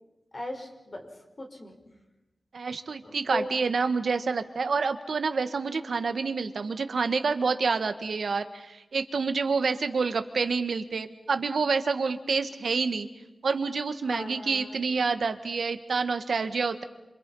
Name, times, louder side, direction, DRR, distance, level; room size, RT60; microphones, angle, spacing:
voice 1, 0.3-1.1 1.4-1.8 3.0-3.5 14.1-14.8, left 1 dB, 35° left, 3 dB, 4.9 m, -37 dB
voice 2, 2.5-13.1 13.4-16.8, right 4 dB, 75° right, 9 dB, 1.7 m, -28 dB
29.0 x 27.5 x 5.6 m, 1.0 s
wide cardioid pair, 115°, 0 cm